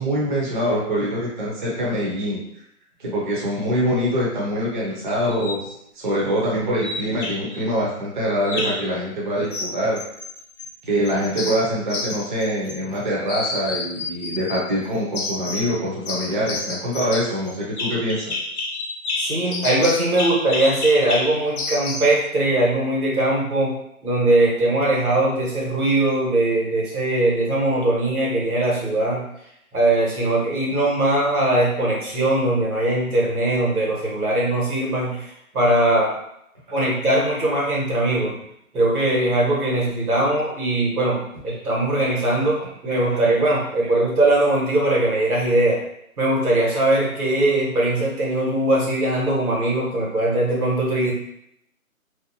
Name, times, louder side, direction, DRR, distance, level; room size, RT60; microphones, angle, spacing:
voice 1, 0.0-2.4 3.0-10.0 10.8-18.3 36.7-36.8 42.9-43.2, equal, 35° right, -5 dB, 0.5 m, -24 dB
sound 1, 5.3-5.6 6.8-7.6 8.4-8.9 9.5-10.7 11.0-13.0 13.3-14.6 15.1-15.8 16.1-22.2, left 3 dB, 85° left, 0.7 m, -29 dB
voice 2, 19.2-23.8 24.0-29.3 29.7-36.1 36.7-38.3 38.7-45.8 46.2-51.1, right 1 dB, 90° right, -4 dB, 1.2 m, -20 dB
2.6 x 2.1 x 2.6 m, 0.76 s
figure-of-eight pair, 155°, 43 cm